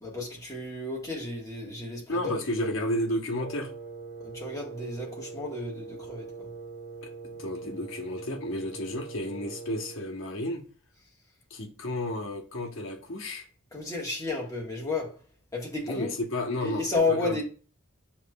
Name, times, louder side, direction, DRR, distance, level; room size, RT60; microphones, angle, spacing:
voice 1, 0.0-2.7 4.2-6.5 13.7-15.2 15.5-16.1 16.6-17.4, left 3 dB, 15° left, 1.5 m, -32 dB
voice 2, 2.1-3.7 7.0-10.6 11.5-13.5 15.8-17.4, left 1 dB, 65° left, 1.1 m, -32 dB
Wind instrument woodwind instrument, 3.4-10.1, right 4 dB, 50° right, 0.8 m, -42 dB
7.1 x 3.1 x 2.3 m
head